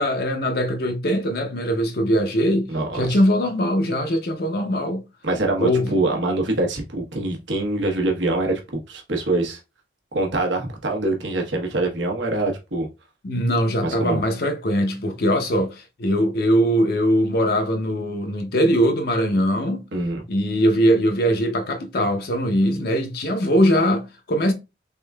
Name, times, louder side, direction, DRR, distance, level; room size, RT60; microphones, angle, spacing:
voice 1, 0.0-5.0 5.6-5.9 13.2-19.8 20.3-24.5, equal, 55° left, 0.6 m, -21 dB
voice 2, 2.7-3.1 5.2-9.6 10.1-12.9 13.8-14.2 19.9-20.2, right 2 dB, 80° right, 1.0 m, -24 dB
3.6 x 3.5 x 2.2 m
head